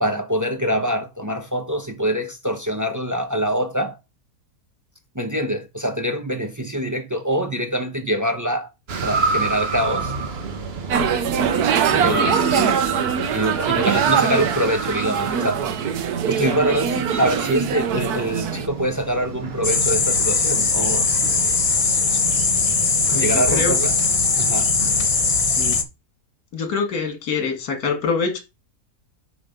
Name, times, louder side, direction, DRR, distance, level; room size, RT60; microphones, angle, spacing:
voice 1, 0.0-4.0 5.1-8.7 9.0-10.1 11.9-12.7 13.3-15.7 16.3-21.1 23.1-23.9 24.4-24.7, equal, 20° right, 0.5 m, -24 dB
sound 1, 8.9-25.4, right 4 dB, 45° right, 1.1 m, -30 dB
sound 2, 10.9-18.7, right 7 dB, 70° right, 1.3 m, -22 dB
voice 2, 11.9-12.4 23.1-23.7 25.4-25.8 26.5-28.4, left 5 dB, 65° left, 2.2 m, -26 dB
sound 3, 19.6-25.8, left 4 dB, 35° left, 0.6 m, -20 dB
9.2 x 3.6 x 5.1 m
omnidirectional pair, 1.8 m